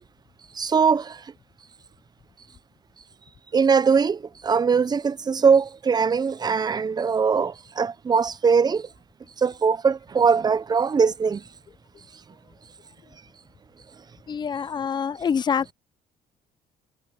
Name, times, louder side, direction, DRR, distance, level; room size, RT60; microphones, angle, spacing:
voice 1, 0.5-1.2 3.5-8.9 9.4-11.4, right 5 dB, 25° right, 0.6 m, -21 dB
voice 2, 14.3-15.7, left 7 dB, 25° left, 0.4 m, -26 dB
cardioid pair, 110°, 17 cm